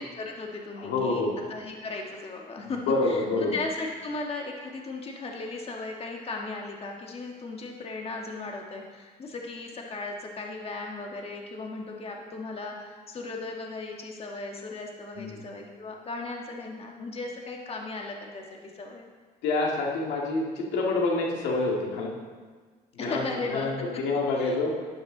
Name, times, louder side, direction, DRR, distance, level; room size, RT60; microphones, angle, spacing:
voice 1, 0.0-19.1 23.0-23.7 24.4-24.6, left 3 dB, 35° left, 1 dB, 1.6 m, -37 dB
voice 2, 0.8-1.3 2.6-3.6 15.2-15.3 19.4-22.1 23.0-24.8, left 3 dB, 90° left, -1 dB, 2.1 m, -27 dB
12.0 x 11.0 x 3.9 m, 1.5 s
cardioid pair, 110°, 17 cm